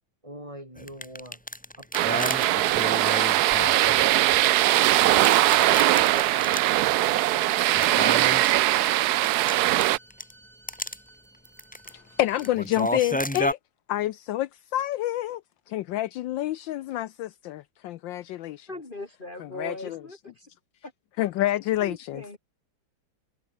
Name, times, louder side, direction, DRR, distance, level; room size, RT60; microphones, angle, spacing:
voice 1, 0.2-1.4 1.8-2.9, equal, 15° right, 7.5 m, -44 dB
sound 1, 0.8-4.4 4.8-6.8 7.0-7.1 7.6-10.3 10.7-11.0 11.4-11.9 12.3-13.5, equal, 5° left, 2.2 m, -32 dB
sound 2, 1.9-10.0, right 15 dB, 75° right, 0.9 m, -21 dB
Bowed string instrument, 7.3-12.6, right 2 dB, 45° right, 8.3 m, -53 dB
voice 2, 12.2-13.6 13.9-15.4 15.7-18.7 19.4-20.0 21.2-22.2, left 14 dB, 75° left, 1.3 m, -28 dB
voice 3, 18.7-20.5 21.8-22.4, left 2 dB, 25° left, 2.8 m, -39 dB
omnidirectional pair, 2.2 m